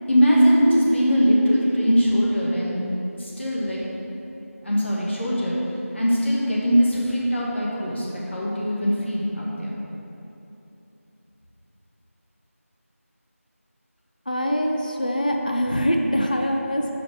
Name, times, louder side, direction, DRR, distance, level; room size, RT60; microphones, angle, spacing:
voice 1, 0.1-2.8 3.2-3.8 4.6-5.6 5.9-9.8, equal, 50° left, -6 dB, 1.6 m, -21 dB
voice 2, 14.3-17.0, equal, 35° left, 2 dB, 0.4 m, -23 dB
6.5 x 5.0 x 4.8 m, 2.9 s
figure-of-eight pair, 175°, 8 cm